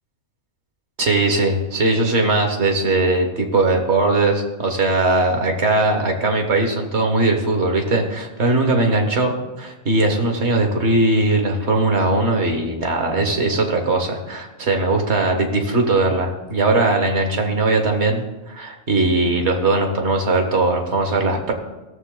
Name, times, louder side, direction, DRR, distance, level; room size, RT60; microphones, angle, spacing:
voice 1, 1.0-21.5, right 2 dB, 55° right, 3 dB, 1.7 m, -19 dB
16.5 x 7.2 x 3.9 m, 1.1 s
omnidirectional pair, 1.4 m